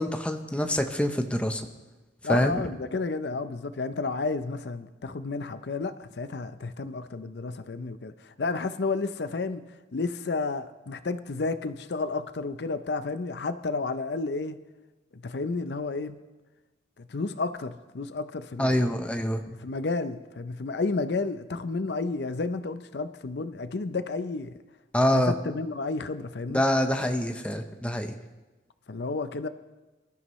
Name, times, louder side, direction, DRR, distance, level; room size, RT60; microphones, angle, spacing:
voice 1, 0.0-1.6 2.3-2.5 18.6-19.4 24.9-25.3 26.5-28.1, left 1 dB, 5° left, 5 dB, 0.8 m, -25 dB
voice 2, 2.2-9.6 9.9-14.6 15.1-16.2 17.0-18.8 19.6-24.5 25.1-26.6 28.9-29.5, left 3 dB, 65° left, 11 dB, 0.6 m, -31 dB
25.5 x 13.0 x 3.1 m, 1.1 s
head